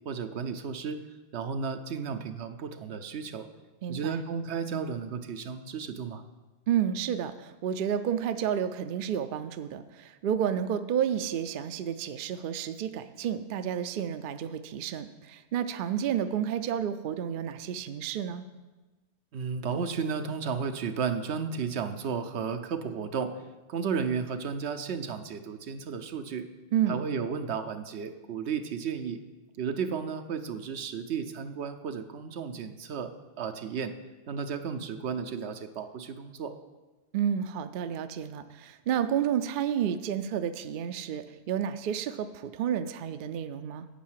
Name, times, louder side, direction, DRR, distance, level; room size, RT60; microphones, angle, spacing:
voice 1, 0.0-1.0 1.3-3.5 3.9-6.2 19.3-23.3 23.7-26.5 26.9-29.2 29.6-33.1 33.4-33.9 34.3-36.5, right 6 dB, 80° right, 8 dB, 1.0 m, -33 dB
voice 2, 3.8-4.2 6.7-18.4 26.7-27.0 37.1-43.9, right 9 dB, 60° right, 10 dB, 0.6 m, -30 dB
10.0 x 5.5 x 7.4 m, 1.2 s
omnidirectional pair, 1.1 m